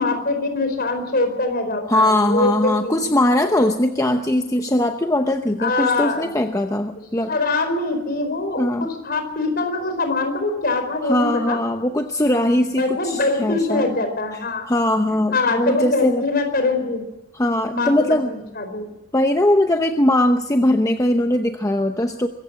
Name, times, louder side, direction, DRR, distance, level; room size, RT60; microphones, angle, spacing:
voice 1, 0.0-3.0 3.6-3.7 5.6-6.3 7.3-11.6 12.8-14.6 15.3-17.0 17.7-18.9, left 3 dB, 45° left, 7 dB, 4.6 m, -23 dB
voice 2, 1.9-7.3 8.6-8.9 11.0-13.9 14.3-16.2 17.3-18.3 19.1-22.3, left 1 dB, 15° left, 5 dB, 0.8 m, -20 dB
24.5 x 15.5 x 7.5 m, 1.0 s
head